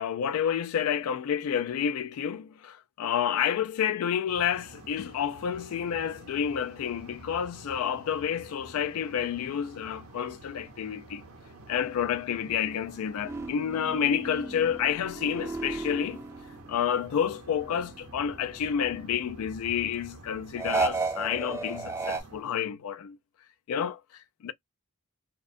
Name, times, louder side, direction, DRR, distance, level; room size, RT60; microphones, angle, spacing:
voice 1, 0.0-11.2 11.7-16.2 16.7-23.2 23.7-24.5, left 8 dB, 75° left, 0.3 m, -29 dB
sound 1, 4.3-22.4, right 2 dB, 75° right, 0.7 m, -49 dB
sound 2, 13.2-17.1 17.5-19.0 20.6-22.2, right 3 dB, 10° right, 0.4 m, -34 dB
2.4 x 2.2 x 2.5 m
head